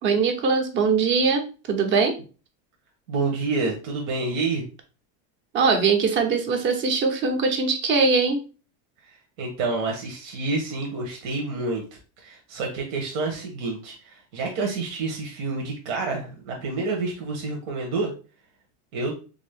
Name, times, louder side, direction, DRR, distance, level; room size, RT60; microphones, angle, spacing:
voice 1, 0.0-2.2 5.5-8.4, right 4 dB, 30° right, 5 dB, 0.6 m, -21 dB
voice 2, 3.1-4.6 9.4-11.8 12.2-18.1 18.9-19.1, right 3 dB, 90° right, 1 dB, 1.0 m, -28 dB
3.5 x 2.6 x 3.4 m, 0.35 s
cardioid pair, 155°, 41 cm